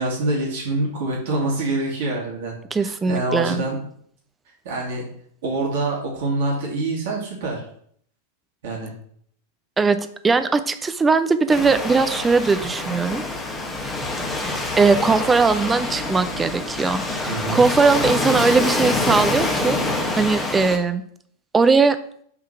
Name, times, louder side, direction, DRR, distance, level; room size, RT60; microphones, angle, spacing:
voice 1, 0.0-2.5 2.8-3.8 4.6-5.0 5.4-7.6 8.6-8.9 17.3-17.6, right 2 dB, 55° right, -2 dB, 2.2 m, -25 dB
voice 2, 2.7-3.6 9.8-10.0 10.2-13.2 14.4-19.8 20.1-21.0 21.5-22.0, right 4 dB, 15° right, 10 dB, 0.6 m, -19 dB
Waves surf, 11.5-20.8, left 2 dB, 10° left, 1.2 m, -26 dB
7.2 x 3.8 x 5.8 m, 0.63 s
figure-of-eight pair, 90°, 0 cm